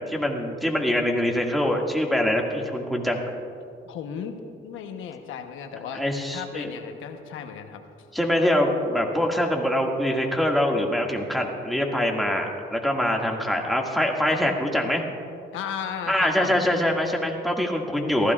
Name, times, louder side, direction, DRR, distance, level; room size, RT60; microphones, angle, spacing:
voice 1, 0.1-3.2 5.9-6.7 8.1-15.0 16.1-18.3, left 1 dB, ahead, 0 dB, 2.0 m, -24 dB
voice 2, 3.8-4.4 4.6-6.0 6.3-7.8 15.5-16.7, left 7 dB, 90° left, 6 dB, 1.0 m, -35 dB
24.0 x 15.0 x 2.4 m, 2.4 s
cardioid pair, 90°, 20 cm